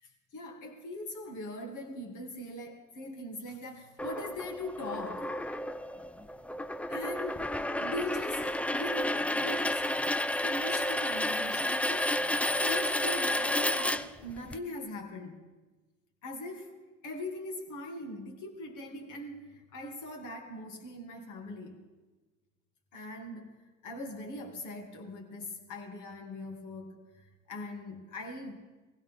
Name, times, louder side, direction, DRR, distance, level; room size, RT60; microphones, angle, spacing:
voice 1, 0.0-5.3 6.9-7.4 7.8-9.9 10.3-15.4 16.2-16.8 17.0-21.8 22.9-28.6, left 1 dB, 50° left, 2.7 m, -41 dB
sound 1, 4.0-14.6, left 1 dB, 5° left, 0.4 m, -31 dB
21.5 x 16.0 x 3.8 m
supercardioid pair, 85°, 38 cm